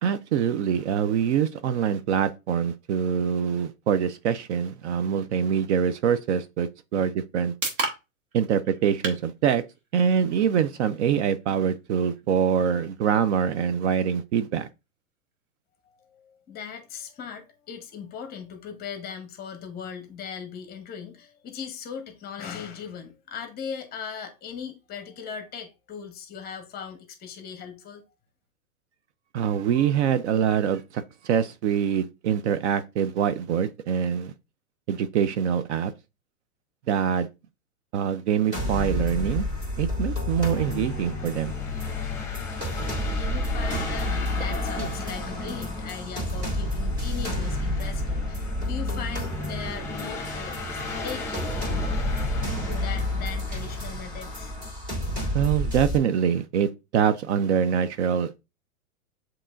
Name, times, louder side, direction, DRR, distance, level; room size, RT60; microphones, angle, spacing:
voice 1, 0.0-7.5 8.3-9.6 9.9-14.7 29.3-34.3 34.9-35.9 36.9-37.3 37.9-39.5 39.8-41.5 44.8-44.9 55.3-58.4, right 8 dB, 55° right, 0.5 m, -24 dB
sound 1, 6.9-20.8, right 3 dB, 75° right, 1.6 m, -41 dB
voice 2, 15.9-28.0 43.0-52.1 52.6-54.6, left 7 dB, 20° left, 0.9 m, -39 dB
sound 2, 38.5-56.0, left 1 dB, 25° right, 2.4 m, -30 dB
sound 3, 39.5-54.7, left 3 dB, 5° left, 1.4 m, -36 dB
7.2 x 3.0 x 2.4 m
hypercardioid pair, 125°, 43 cm